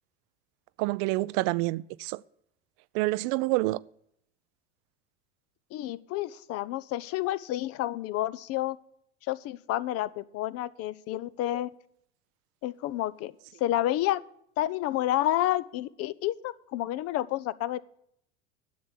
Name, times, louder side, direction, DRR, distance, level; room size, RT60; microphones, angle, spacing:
voice 1, 0.8-2.2 2.9-3.8, right 20 dB, 55° right, 0.5 m, -27 dB
voice 2, 5.7-8.8 9.3-11.7 12.6-13.3 13.6-14.2 14.6-17.8, left 14 dB, 45° left, 0.7 m, -30 dB
10.5 x 7.4 x 8.3 m
hypercardioid pair, 85°, 33 cm